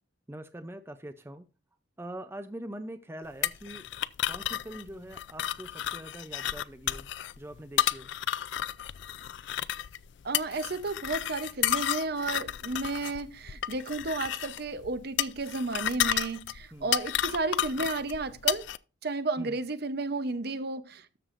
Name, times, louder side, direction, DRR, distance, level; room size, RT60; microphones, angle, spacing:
voice 1, 0.3-1.5 2.0-3.9 4.3-7.1 7.4-8.1 16.7-17.0 19.4-19.6, right 1 dB, 10° right, 0.5 m, -43 dB
sound 1, 3.4-18.8, left 12 dB, 60° left, 0.4 m, -32 dB
voice 2, 10.2-18.7 19.0-21.2, right 3 dB, 50° right, 0.7 m, -32 dB
13.0 x 6.9 x 2.5 m
head